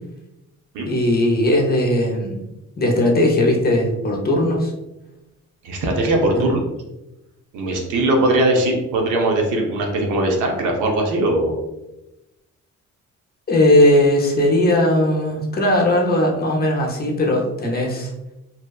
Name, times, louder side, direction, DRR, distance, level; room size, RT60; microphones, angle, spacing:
voice 1, 0.9-2.4 2.8-4.7 6.3-6.5 13.5-18.1, left 1 dB, 30° left, 0 dB, 0.6 m, -18 dB
voice 2, 5.6-6.7 7.5-11.5, right 1 dB, 80° right, 1 dB, 0.7 m, -20 dB
2.7 x 2.1 x 2.3 m, 0.95 s
cardioid pair, 90°, 30 cm